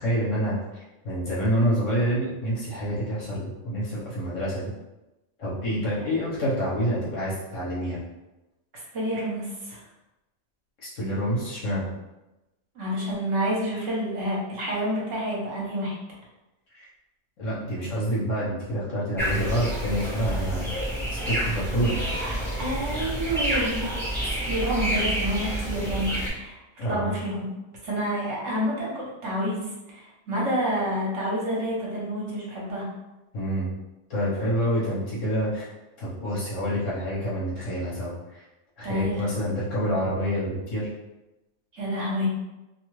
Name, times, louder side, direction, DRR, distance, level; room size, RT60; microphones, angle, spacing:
voice 1, 0.0-4.7 5.4-8.0 10.8-11.9 16.7-16.9 17.4-20.7 21.2-22.2 26.8-27.1 33.3-33.7 34.1-35.7 36.0-38.4 38.8-40.9, equal, 65° left, -7 dB, 1.2 m, -27 dB
voice 2, 8.9-9.8 12.7-15.9 22.2-26.6 26.9-27.4 27.8-32.9 38.8-39.1 41.7-42.3, equal, 60° right, -5 dB, 1.1 m, -29 dB
sound 1, 19.2-26.3, right 1 dB, ahead, 0.7 m, -29 dB
2.7 x 2.3 x 3.0 m, 0.99 s
omnidirectional pair, 1.4 m